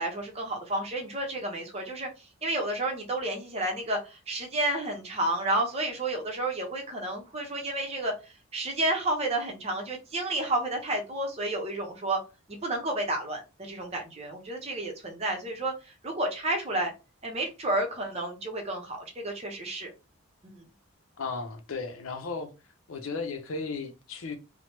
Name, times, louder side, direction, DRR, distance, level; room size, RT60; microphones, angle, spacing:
voice 1, 0.0-12.2 12.5-16.9 17.2-19.9 20.4-20.6, right 1 dB, 30° right, 0.7 m, -31 dB
voice 2, 21.2-22.5 22.9-24.4, left 4 dB, 75° left, 0.6 m, -35 dB
3.1 x 2.1 x 2.9 m
head